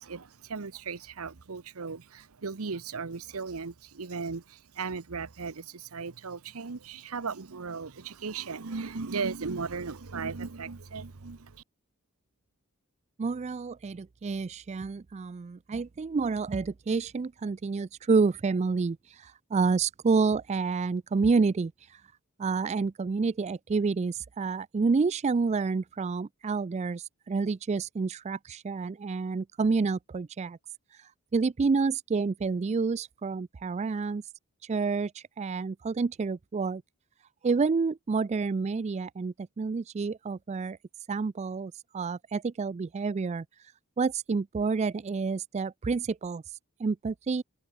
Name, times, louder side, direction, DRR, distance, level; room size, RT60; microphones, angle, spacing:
voice 1, 0.0-11.6, right 5 dB, 75° right, 0.9 m, -37 dB
voice 2, 13.2-22.0 22.4-30.6 30.9-34.2 34.6-36.8 37.4-40.8 41.1-43.4 44.0-47.4, right 4 dB, 30° right, 0.3 m, -29 dB
head